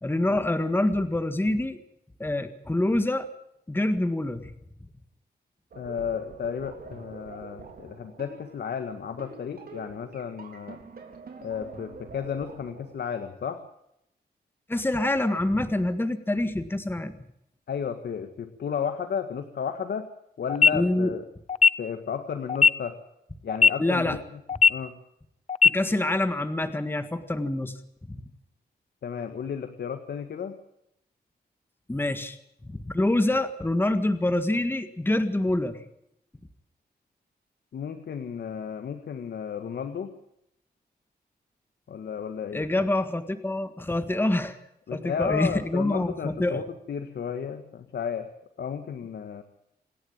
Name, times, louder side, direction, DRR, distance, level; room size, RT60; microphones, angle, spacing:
voice 1, 0.0-1.8 2.2-3.3 3.7-4.5 14.7-17.2 20.7-21.1 23.8-24.2 25.7-27.7 28.1-28.2 31.9-32.4 32.6-35.8 42.5-44.6 44.9-46.6, left 1 dB, 15° left, 9 dB, 1.7 m, -26 dB
voice 2, 5.7-10.8 11.4-13.6 17.7-20.1 20.4-21.3 21.8-23.0 23.4-24.4 24.7-25.0 29.0-30.6 37.7-40.1 41.9-42.7 44.9-48.3 48.6-49.4, left 7 dB, 75° left, 8 dB, 1.8 m, -33 dB
sound 1, 5.7-13.0, right 5 dB, 65° right, 4.3 m, -45 dB
sound 2, 20.5-20.7 21.5-21.7 22.5-22.7 23.5-23.7 24.5-24.7 25.5-25.7, left 5 dB, 40° left, 0.7 m, -16 dB
27.5 x 11.0 x 8.8 m, 0.78 s
wide cardioid pair, 105°, 17 cm